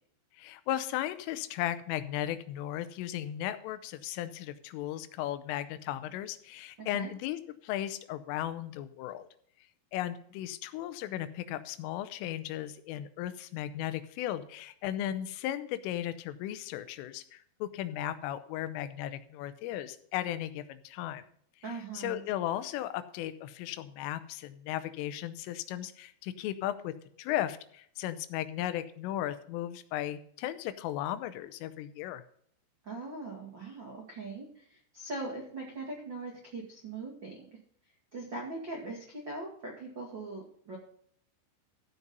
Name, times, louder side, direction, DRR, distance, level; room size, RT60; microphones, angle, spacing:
voice 1, 0.3-9.3 9.9-21.2 21.7-32.2, left 12 dB, 85° left, 12 dB, 3.3 m, -36 dB
voice 2, 6.8-7.1 21.6-22.2 32.8-37.4 38.1-40.8, right 2 dB, 75° right, -1 dB, 1.0 m, -41 dB
15.0 x 5.5 x 5.3 m, 0.63 s
omnidirectional pair, 5.7 m